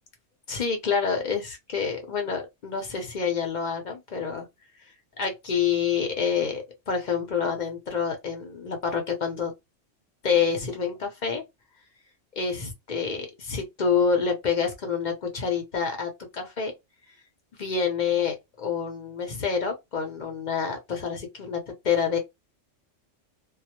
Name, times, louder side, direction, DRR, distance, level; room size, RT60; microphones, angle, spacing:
voice 1, 0.5-4.5 5.2-9.5 10.2-11.4 12.4-16.7 17.6-22.2, left 6 dB, 50° left, 0.5 m, -27 dB
2.2 x 2.0 x 2.8 m
omnidirectional pair, 1.3 m